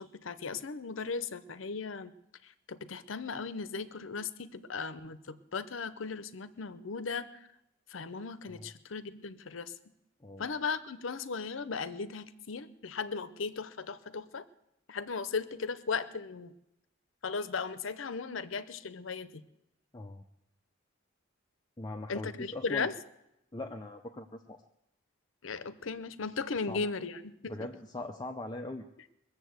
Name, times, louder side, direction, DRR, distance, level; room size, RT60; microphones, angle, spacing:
voice 1, 0.0-2.1 2.7-7.3 7.9-9.7 10.4-14.4 14.9-16.5 17.2-19.4 22.1-22.9 25.4-27.5, left 5 dB, 75° left, 14 dB, 0.7 m, -37 dB
voice 2, 19.9-20.3 21.8-22.9 23.5-24.6 26.7-26.8 27.5-28.9, left 2 dB, 20° left, 3 dB, 0.6 m, -41 dB
21.0 x 7.3 x 8.0 m, 0.84 s
head